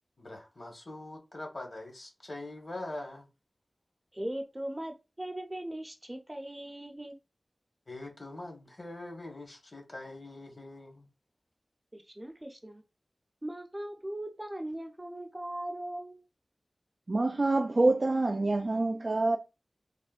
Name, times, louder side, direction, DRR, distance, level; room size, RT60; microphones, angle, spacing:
voice 1, 0.2-3.3 7.9-11.1, left 2 dB, 55° left, 1.1 m, -43 dB
voice 2, 4.1-7.2 11.9-12.8 13.4-16.2, right 1 dB, 20° right, 0.6 m, -39 dB
voice 3, 17.1-19.4, right 2 dB, 55° right, 0.3 m, -26 dB
3.5 x 2.2 x 2.4 m
wide cardioid pair, 70°, 0 cm